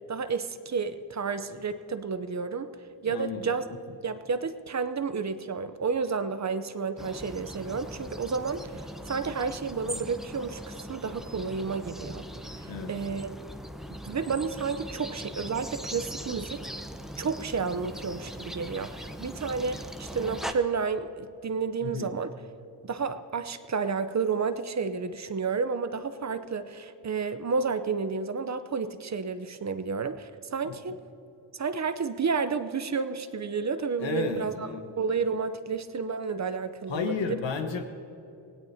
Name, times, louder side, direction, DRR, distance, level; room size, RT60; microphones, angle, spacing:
voice 1, 0.1-2.7 3.0-3.6 4.0-12.3 12.6-13.3 14.0-16.6 17.2-22.3 22.8-31.0 31.5-34.7 35.0-37.1, right 5 dB, 40° right, 11 dB, 0.8 m, -31 dB
voice 2, 3.1-3.4 12.6-12.9 21.8-22.1 30.6-30.8 34.0-34.9 36.9-37.9, left 5 dB, 80° left, 5 dB, 1.3 m, -32 dB
sound 1, 7.0-20.5, equal, ahead, 0.9 m, -40 dB
24.5 x 17.5 x 2.9 m, 2.9 s
supercardioid pair, 55°, 45 cm